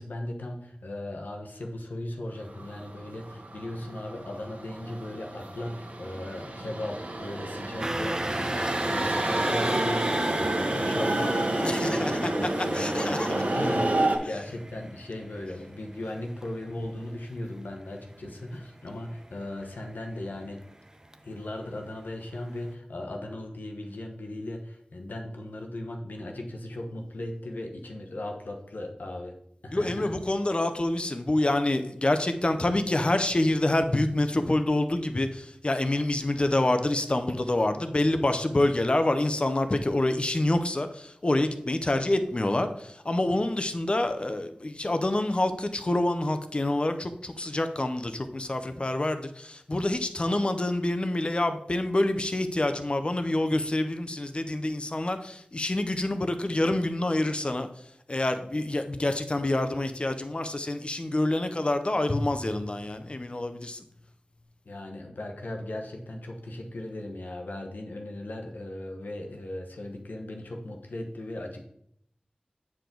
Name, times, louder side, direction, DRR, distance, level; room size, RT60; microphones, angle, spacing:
voice 1, 0.0-20.6 21.2-29.3 29.6-30.1 64.6-71.7, left 1 dB, 90° left, 2 dB, 1.1 m, -37 dB
sound 1, 2.5-14.2, right 1 dB, 60° right, 1.2 m, -29 dB
sound 2, 7.8-21.8 22.2-22.4 22.7-22.8, right 1 dB, 20° right, 0.5 m, -37 dB
voice 2, 11.6-13.7 14.2-14.4 29.7-57.7 58.1-63.8, left 1 dB, 35° left, 8 dB, 0.7 m, -27 dB
8.5 x 4.8 x 3.9 m, 0.71 s
wide cardioid pair, 65°, 3 cm